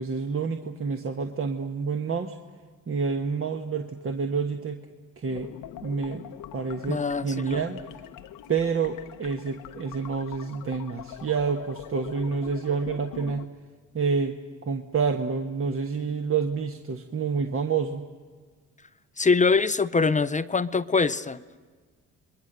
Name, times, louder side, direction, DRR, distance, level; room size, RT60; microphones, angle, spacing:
voice 1, 0.0-2.4 2.9-4.8 5.2-5.5 5.8-6.2 6.5-7.8 8.5-13.5 13.9-14.3 14.6-18.0, right 5 dB, 40° right, 5 dB, 1.3 m, -28 dB
sound 1, 5.3-13.5, left 11 dB, 75° left, 0.9 m, -43 dB
voice 2, 6.9-7.6 19.2-21.4, left 4 dB, 20° left, 14 dB, 0.6 m, -23 dB
29.0 x 21.5 x 6.8 m, 1.5 s
cardioid pair, 75°, 33 cm